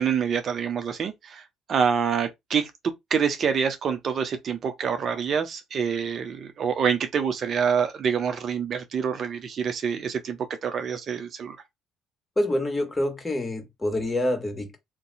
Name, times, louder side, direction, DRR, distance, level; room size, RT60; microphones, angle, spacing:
voice 1, 0.0-2.7 3.1-11.6, right 7 dB, 50° right, 0.7 m, -26 dB
voice 2, 12.4-14.8, left 1 dB, 20° left, 1.5 m, -26 dB
2.7 x 2.2 x 4.0 m
supercardioid pair, 75°, 0 cm